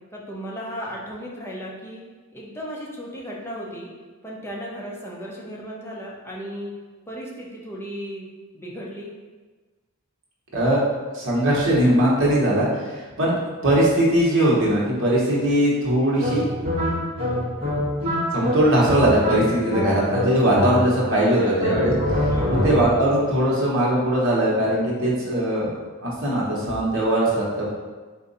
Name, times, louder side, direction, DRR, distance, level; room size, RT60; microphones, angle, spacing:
voice 1, 0.1-2.0 2.3-3.9 4.2-6.7 7.1-8.2 8.5-9.1 21.1-21.6 22.3-22.6, equal, 10° left, -3 dB, 0.6 m, -35 dB
voice 2, 10.5-10.8 11.1-16.5 18.3-25.7 26.0-27.7, right 1 dB, 65° right, -5 dB, 1.2 m, -20 dB
sound 1, 16.2-21.2 21.6-23.1, left 1 dB, 25° right, 1.3 m, -25 dB
3.8 x 2.6 x 4.0 m, 1.3 s
head